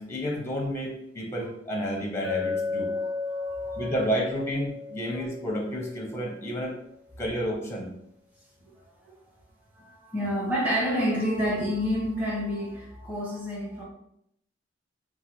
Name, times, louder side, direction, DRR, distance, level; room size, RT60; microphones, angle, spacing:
voice 1, 0.0-2.9 3.8-6.7 7.2-7.9, equal, 15° left, -1 dB, 0.6 m, -30 dB
Chink clink, 2.2-6.2, left 3 dB, 85° right, 0.5 m, -33 dB
voice 2, 3.0-3.9 8.6-8.7 9.0-9.1 9.8-13.8, equal, 10° right, -6 dB, 0.9 m, -29 dB
3.3 x 2.2 x 2.9 m, 0.75 s
head